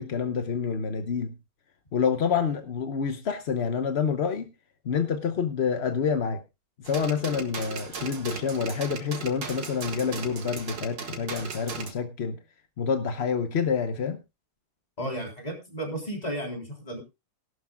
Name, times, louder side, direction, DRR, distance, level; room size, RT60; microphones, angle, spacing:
voice 1, 0.0-1.3 1.9-4.5 4.8-6.4 6.8-12.4 12.8-14.2, left 6 dB, 55° left, 8 dB, 0.7 m, -27 dB
sound 1, 6.8-11.9, right 5 dB, 60° right, 2.4 m, -37 dB
voice 2, 15.0-17.0, right 1 dB, 20° left, 1 dB, 3.8 m, -33 dB
17.5 x 12.0 x 2.3 m, 0.25 s
omnidirectional pair, 2.3 m